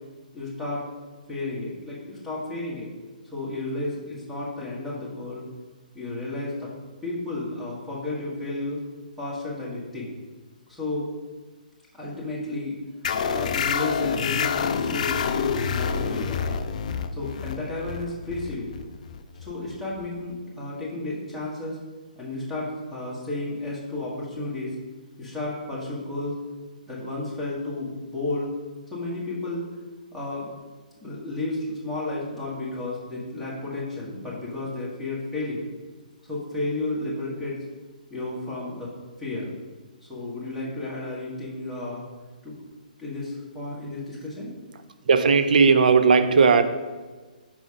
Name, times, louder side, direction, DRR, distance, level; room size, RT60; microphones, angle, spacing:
voice 1, 0.3-0.9 1.3-2.9 3.3-5.4 5.9-6.7 7.0-8.8 9.2-10.1 10.7-11.1 11.9-12.8 13.2-16.6 17.1-18.7 19.4-21.8 22.2-24.7 25.2-26.4 26.9-28.5 28.9-29.6 30.1-30.5 31.0-35.6 36.2-37.6 38.1-38.9 39.2-39.5 40.1-42.0 42.4-42.6 43.0-44.5, left 2 dB, ahead, -7 dB, 1.5 m, -32 dB
sound 1, 13.0-20.2, left 6 dB, 55° left, 0.4 m, -28 dB
voice 2, 45.1-46.6, right 5 dB, 65° right, 9 dB, 0.5 m, -17 dB
4.9 x 3.9 x 5.0 m, 1.3 s
hypercardioid pair, 145°, 5 cm